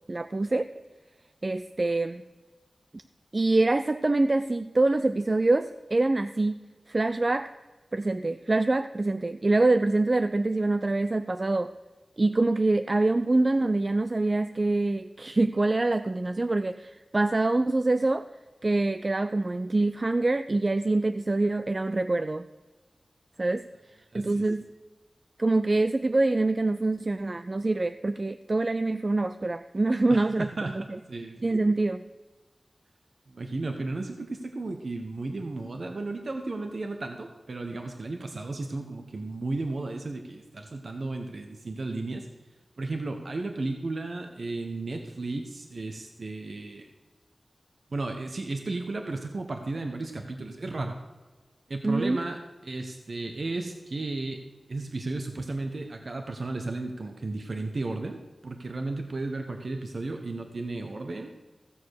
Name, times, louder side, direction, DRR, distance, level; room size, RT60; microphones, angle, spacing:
voice 1, 0.1-0.7 1.4-2.2 3.3-6.6 6.9-7.5 7.9-11.7 12.2-18.3 18.6-22.5 23.4-23.6 24.1-24.6 25.4-30.5 30.7-30.8 31.4-32.0 51.8-52.2, right 2 dB, 40° right, 11 dB, 0.4 m, -25 dB
voice 2, 24.1-24.4 30.1-31.5 33.3-42.3 42.8-46.8 47.9-51.0 51.7-54.4 54.7-61.3, right 2 dB, 65° right, 4 dB, 1.1 m, -34 dB
15.5 x 7.0 x 6.5 m, 1.2 s
wide cardioid pair, 80°, 0 cm